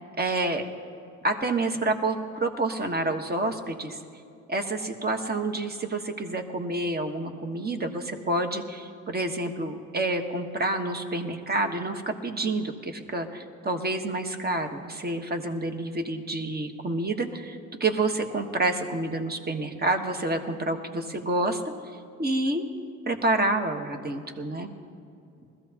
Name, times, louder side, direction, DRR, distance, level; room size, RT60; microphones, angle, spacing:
voice 1, 0.2-0.7 1.2-4.0 4.5-22.6 23.1-24.7, right 2 dB, 30° right, 6 dB, 1.4 m, -28 dB
21.0 x 14.5 x 2.9 m, 2.6 s
cardioid pair, 80°, 31 cm